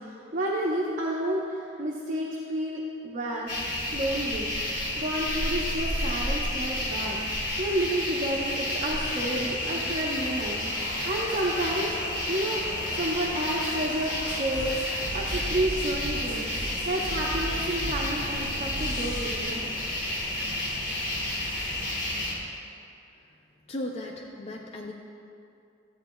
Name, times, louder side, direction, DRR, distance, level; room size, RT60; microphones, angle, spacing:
voice 1, 0.0-4.5 5.0-16.5 16.8-19.7, right 1 dB, 45° right, -4 dB, 0.8 m, -31 dB
sound 1, 3.5-22.3, left 1 dB, 50° left, 1.6 m, -31 dB
sound 2, 9.8-18.2, left 1 dB, 70° left, 1.4 m, -44 dB
sound 3, 14.2-19.2, equal, 90° left, 1.6 m, -36 dB
voice 2, 23.7-24.9, left 1 dB, 35° left, 0 dB, 0.4 m, -36 dB
13.0 x 8.7 x 2.2 m, 2.5 s
head